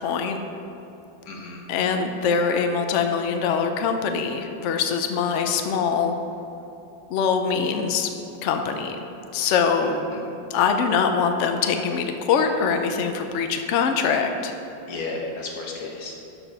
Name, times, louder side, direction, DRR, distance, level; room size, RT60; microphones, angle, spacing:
voice 1, 0.0-0.4 1.7-6.1 7.1-8.1 8.4-9.0 9.3-10.2 10.5-14.5, left 6 dB, 85° left, 6 dB, 0.6 m, -23 dB
voice 2, 1.2-1.7 10.1-10.2 14.9-16.1, left 3 dB, 55° left, 0 dB, 1.5 m, -33 dB
12.0 x 4.5 x 5.5 m, 2.8 s
omnidirectional pair, 2.0 m